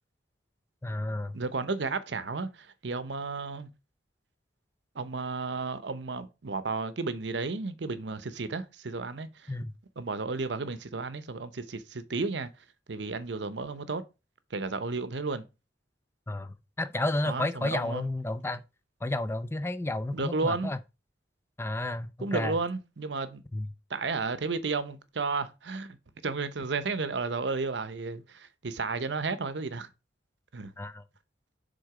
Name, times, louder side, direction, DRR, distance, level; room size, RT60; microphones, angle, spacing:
voice 1, 0.8-1.4 9.5-9.7 16.3-18.6 19.0-20.8 21.6-22.6 23.5-23.7 30.8-31.0, left 2 dB, 15° left, 0.4 m, -31 dB
voice 2, 1.3-3.7 4.9-9.5 10.0-12.5 12.9-14.0 14.5-15.4 17.2-18.1 20.1-20.7 22.2-23.4 23.9-26.0 26.2-29.9 30.5-30.7, right 4 dB, 75° right, 0.8 m, -33 dB
6.6 x 3.8 x 4.9 m
head